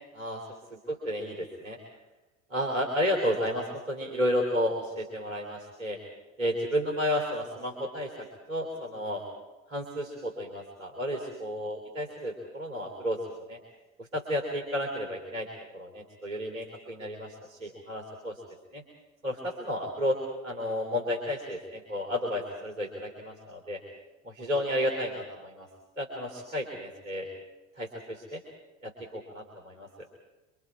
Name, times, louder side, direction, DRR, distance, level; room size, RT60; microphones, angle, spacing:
voice 1, 0.1-1.8 2.5-6.0 6.4-9.2 9.7-13.6 14.0-15.5 15.7-18.4 18.7-18.8 19.2-23.8 24.2-25.7 26.0-27.3 27.8-28.4 28.8-30.1, equal, 75° right, 1 dB, 3.5 m, -32 dB
25.5 x 25.0 x 4.7 m, 1.1 s
figure-of-eight pair, 70°, 40 cm